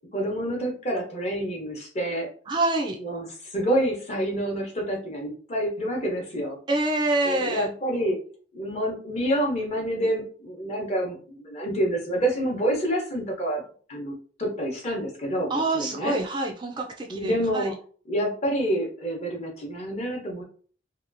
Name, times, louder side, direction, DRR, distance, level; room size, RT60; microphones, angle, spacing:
voice 1, 0.1-2.3 3.0-6.6 7.2-8.2 8.5-13.6 13.9-14.1 14.4-16.2 17.1-17.8 18.1-20.4, right 1 dB, 35° left, 0 dB, 0.8 m, -28 dB
voice 2, 2.5-3.0 6.7-7.7 15.5-17.7, right 2 dB, 25° right, 2 dB, 0.3 m, -26 dB
2.8 x 2.3 x 2.5 m, 0.42 s
head